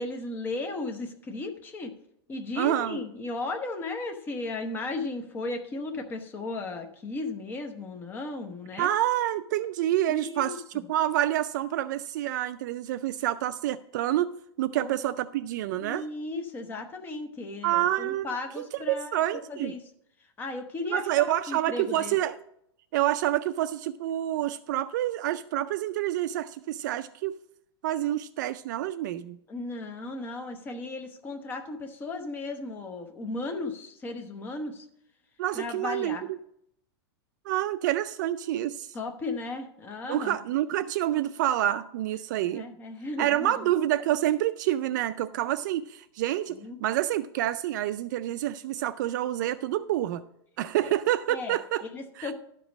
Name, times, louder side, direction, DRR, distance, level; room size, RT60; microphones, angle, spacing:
voice 1, 0.0-1.9 2.3-8.9 10.1-10.6 14.7-14.9 15.8-19.2 19.5-19.8 20.4-22.2 29.5-34.8 35.5-36.2 38.9-40.4 42.5-43.5 46.6-46.8 50.8-50.9 51.3-51.6 51.9-52.3, left 2 dB, 15° left, 4 dB, 0.9 m, -35 dB
voice 2, 2.6-3.0 8.8-14.3 14.6-16.0 17.6-19.7 20.9-22.4 22.9-27.4 27.8-29.4 35.4-36.4 37.5-38.9 40.1-42.7 43.2-50.2 50.6-51.8 52.2-52.3, right 13 dB, 45° right, 13 dB, 0.3 m, -28 dB
11.5 x 5.3 x 6.0 m, 0.72 s
supercardioid pair, 165°, 14 cm